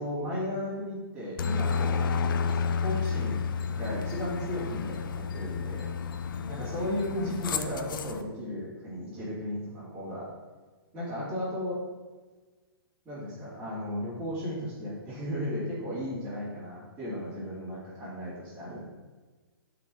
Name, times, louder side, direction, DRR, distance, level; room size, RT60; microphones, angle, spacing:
voice 1, 0.0-5.9 6.5-10.3 10.9-11.8 13.0-18.8, left 1 dB, 10° right, -13 dB, 4.2 m, -35 dB
Aircraft, 1.4-8.2, left 5 dB, 60° left, 0.8 m, -31 dB
17.5 x 6.0 x 4.5 m, 1.3 s
hypercardioid pair, 155°, 13 cm